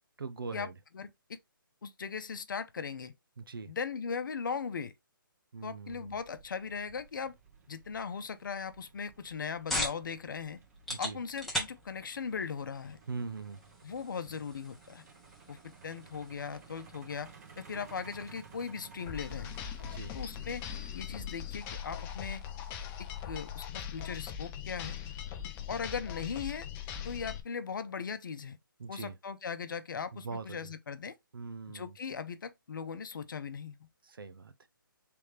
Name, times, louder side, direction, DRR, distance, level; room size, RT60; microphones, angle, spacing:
voice 1, 0.2-0.7 3.4-3.7 5.5-6.1 10.9-11.2 13.1-13.6 19.9-20.1 28.8-29.2 30.1-30.7 31.3-32.0 34.0-34.7, right 4 dB, 80° right, 0.7 m, -41 dB
voice 2, 0.9-1.4 1.8-3.1 3.7-4.9 5.6-7.3 7.7-10.6 11.0-13.0 13.8-15.0 15.5-15.6 15.8-17.3 17.6-19.6 20.1-20.6 20.9-22.4 23.0-25.0 25.7-26.7 27.0-28.6 28.9-31.1 31.7-33.8, left 6 dB, 65° left, 0.7 m, -38 dB
Truck, 5.9-23.6, right 6 dB, 45° right, 1.0 m, -57 dB
sound 1, 9.1-24.2, left 1 dB, ahead, 1.0 m, -44 dB
sound 2, 19.1-27.4, left 9 dB, 15° left, 0.5 m, -40 dB
3.4 x 3.1 x 4.8 m
hypercardioid pair, 145°, 12 cm